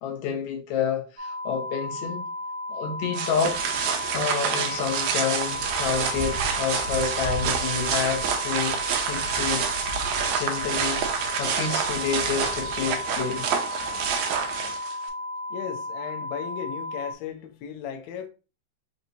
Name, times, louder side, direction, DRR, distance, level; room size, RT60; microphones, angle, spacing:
voice 1, 0.0-2.2 2.7-3.6 4.1-9.7 10.0-13.5, left 6 dB, 70° left, 2.0 m, -29 dB
sound 1, 1.2-17.1, left 2 dB, 10° right, 1.0 m, -34 dB
sound 2, 3.1-15.1, right 6 dB, 80° right, 2.0 m, -28 dB
voice 2, 15.5-18.3, left 9 dB, 90° left, 1.5 m, -36 dB
5.3 x 2.8 x 2.6 m
omnidirectional pair, 3.7 m